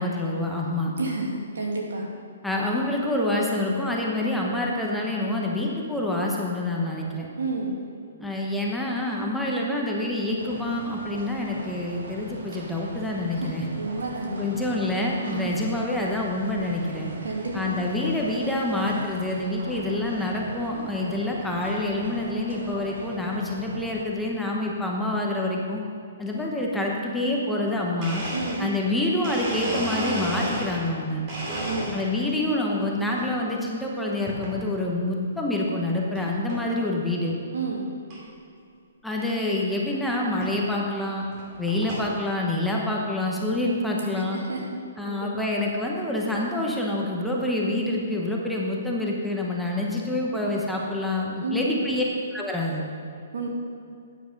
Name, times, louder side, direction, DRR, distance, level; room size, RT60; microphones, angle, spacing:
voice 1, 0.0-0.9 2.4-7.3 8.2-13.6 14.4-17.1 17.5-25.8 26.2-28.2 28.6-31.2 31.9-37.3 39.0-41.3 41.6-44.4 45.0-52.0 52.3-52.8, left 1 dB, ahead, -3 dB, 1.0 m, -27 dB
voice 2, 1.0-2.0 7.4-7.8 13.4-13.5 13.7-14.8 15.2-15.5 17.2-17.8 28.3-28.6 31.5-31.9 37.5-37.9 44.3-44.6 45.0-45.5 51.4-51.8 53.3-53.5, right 3 dB, 85° right, -2 dB, 2.5 m, -30 dB
sound 1, 10.4-24.1, right 2 dB, 70° right, 1.5 m, -41 dB
Domestic sounds home sounds, 28.0-30.9 31.3-32.3 32.8-33.3 34.3-34.6 35.2-35.3 36.1-36.2 36.5-36.8 37.3-37.4 37.5-37.6 38.1-38.2 39.5-39.6 40.4-40.6 41.2-42.1, right 1 dB, 35° right, 2.6 m, -33 dB
9.2 x 7.7 x 5.3 m, 2.5 s
hypercardioid pair, 160°, 0 cm